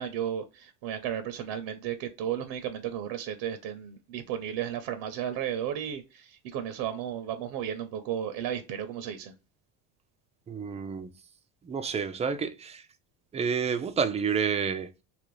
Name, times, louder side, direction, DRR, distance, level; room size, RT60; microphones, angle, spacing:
voice 1, 0.0-9.3, right 10 dB, 70° right, 0.6 m, -34 dB
voice 2, 10.5-11.1 11.6-12.8 13.3-14.9, right 6 dB, 20° right, 0.3 m, -29 dB
2.9 x 2.5 x 3.1 m
cardioid pair, 115°, 40 cm